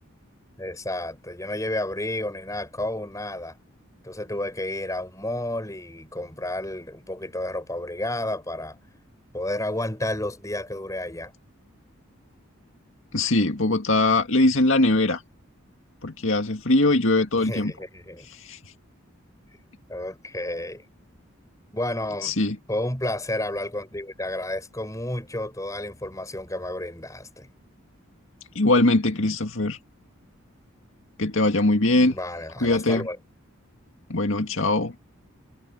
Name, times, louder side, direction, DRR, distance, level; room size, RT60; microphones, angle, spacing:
voice 1, 0.6-3.6 4.0-8.8 9.3-11.3 17.4-18.3 19.9-20.8 21.7-22.4 22.7-27.5 32.0-33.2, left 1 dB, 15° left, 5.6 m, -31 dB
voice 2, 13.1-15.2 16.0-17.7 18.3-18.6 22.2-22.6 28.6-29.8 31.2-32.2 32.6-33.1 34.1-34.9, left 2 dB, 65° left, 2.1 m, -21 dB
head